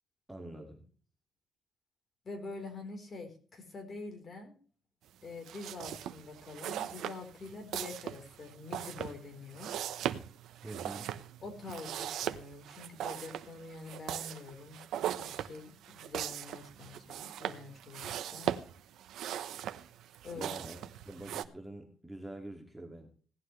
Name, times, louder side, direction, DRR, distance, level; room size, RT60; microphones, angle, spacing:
voice 1, 0.3-0.9 10.6-11.1 20.3-20.8 21.1-23.1, right 1 dB, 5° right, 2 dB, 2.3 m, -45 dB
voice 2, 2.2-4.5 5.2-9.7 11.4-18.5 20.2-20.5, left 3 dB, 35° left, 4 dB, 4.0 m, -46 dB
sound 1, 5.4-21.4, right 11 dB, 85° right, 0.9 m, -39 dB
17.5 x 11.5 x 3.3 m, 0.40 s
cardioid pair, 145°, 0 cm